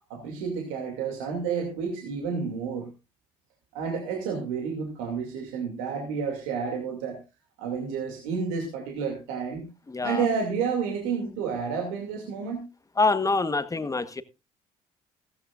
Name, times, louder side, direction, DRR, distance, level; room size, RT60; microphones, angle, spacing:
voice 1, 0.1-2.9 3.7-7.2 7.6-9.7 10.0-12.6, right 6 dB, 85° right, 2 dB, 2.6 m, -30 dB
voice 2, 9.9-10.3 13.0-14.2, left 3 dB, 20° left, 13 dB, 1.2 m, -25 dB
15.0 x 14.0 x 2.5 m, 0.27 s
hypercardioid pair, 60°, 16 cm